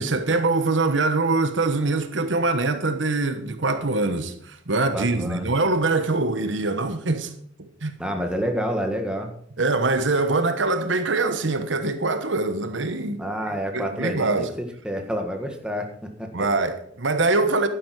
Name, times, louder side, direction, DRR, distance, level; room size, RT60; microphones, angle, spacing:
voice 1, 0.0-7.3 7.6-8.0 9.6-14.5 16.3-17.7, right 3 dB, 75° right, 1.2 m, -23 dB
voice 2, 4.9-5.5 8.0-9.3 13.2-16.5, equal, 5° right, 1.6 m, -29 dB
11.5 x 10.0 x 4.8 m
head